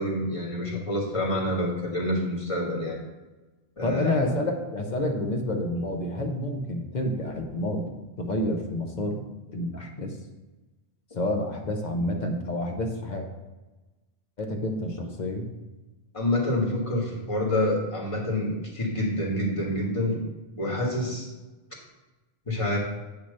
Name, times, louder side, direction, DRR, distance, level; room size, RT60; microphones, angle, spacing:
voice 1, 0.0-3.0 3.8-4.3 16.1-20.2 20.6-21.3 22.5-22.8, left 1 dB, 30° left, -3 dB, 1.6 m, -27 dB
voice 2, 3.8-9.2 9.5-10.1 11.1-13.2 14.4-15.5, left 1 dB, 45° left, 2 dB, 1.0 m, -29 dB
8.6 x 2.9 x 6.4 m, 1.2 s
omnidirectional pair, 1.1 m